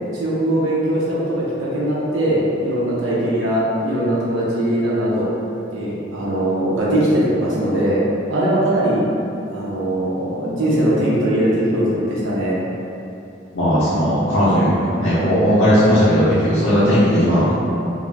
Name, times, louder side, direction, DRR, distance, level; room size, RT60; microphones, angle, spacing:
voice 1, 0.1-5.3 5.7-8.0 8.3-9.0 9.5-12.6, right 1 dB, 85° right, -7 dB, 0.6 m, -20 dB
voice 2, 13.5-17.5, equal, 70° left, -11 dB, 0.6 m, -16 dB
2.4 x 2.0 x 3.1 m, 2.8 s
head